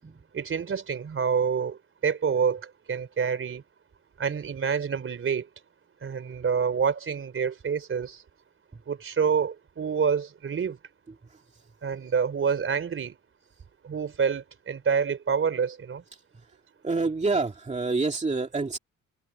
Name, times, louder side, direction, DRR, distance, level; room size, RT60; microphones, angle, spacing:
voice 1, 0.3-3.6 4.2-5.5 6.0-8.2 8.9-10.8 11.8-13.2 13.8-16.0, right 6 dB, 45° right, 3.7 m, -27 dB
voice 2, 16.8-18.8, right 3 dB, 25° right, 2.2 m, -27 dB
cardioid pair, 90°, 30 cm